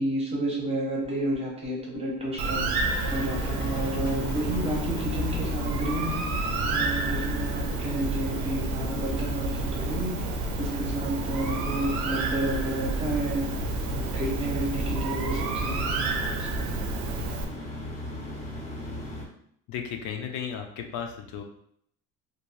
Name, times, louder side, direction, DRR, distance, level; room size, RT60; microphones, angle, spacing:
voice 1, 0.0-2.6 3.1-6.2 6.7-10.1 10.6-13.4 13.9-16.5, right 1 dB, 20° right, -2 dB, 0.6 m, -31 dB
sound 1, 1.0-7.8 8.1-9.7 10.6-11.0 11.3-11.6 13.1-13.4 13.8-14.0 15.6-15.7, left 5 dB, 90° left, 0.8 m, -42 dB
sound 2, 2.2-19.2, left 1 dB, 25° left, 0.5 m, -37 dB
Bird, 2.4-17.4, right 3 dB, 75° right, 0.5 m, -30 dB
voice 2, 19.7-21.4, left 7 dB, 70° left, 4 dB, 0.5 m, -34 dB
2.6 x 2.1 x 3.0 m, 0.68 s
cardioid pair, 160°, 29 cm